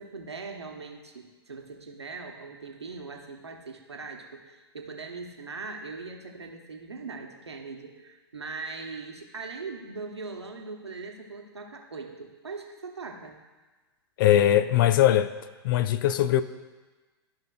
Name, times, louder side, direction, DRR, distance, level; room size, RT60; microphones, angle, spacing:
voice 1, 0.0-13.4, right 4 dB, 85° right, 3 dB, 1.0 m, -40 dB
voice 2, 14.2-15.3 15.6-16.4, left 12 dB, 50° left, 13 dB, 0.4 m, -20 dB
13.0 x 5.6 x 2.4 m, 1.3 s
figure-of-eight pair, 100°, 14 cm